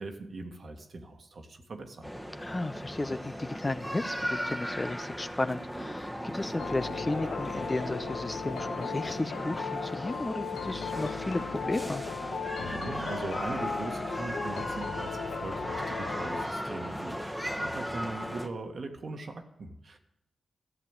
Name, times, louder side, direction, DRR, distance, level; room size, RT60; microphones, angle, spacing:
voice 1, 0.0-2.1 12.6-20.0, right 3 dB, 65° right, 4 dB, 1.8 m, -40 dB
sound 1, 2.0-18.5, equal, ahead, 1.4 m, -37 dB
voice 2, 2.4-12.0, left 2 dB, 30° left, 10 dB, 0.8 m, -34 dB
sound 2, 6.6-16.5, left 7 dB, 90° left, 0.6 m, -37 dB
13.5 x 6.7 x 9.0 m, 0.84 s
cardioid pair, 50°, 0 cm